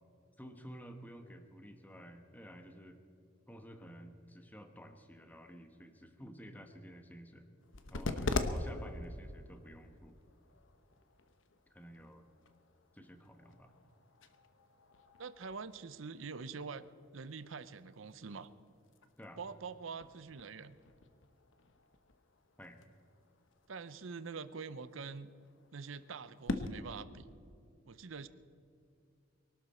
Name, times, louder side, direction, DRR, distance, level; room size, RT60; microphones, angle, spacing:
voice 1, 0.4-3.0 3.5-7.5 7.9-10.2 11.7-12.3 12.9-13.7 19.2-19.4 22.6-22.8, equal, 10° left, 6 dB, 1.2 m, -52 dB
sound 1, 7.6-26.7, left 2 dB, 70° left, 1.0 m, -44 dB
voice 2, 15.2-16.8 17.1-18.5 19.4-20.8 23.7-25.3 25.7-27.3 27.9-28.3, right 5 dB, 80° right, 14 dB, 0.7 m, -45 dB
23.5 x 12.0 x 4.3 m, 2.5 s
head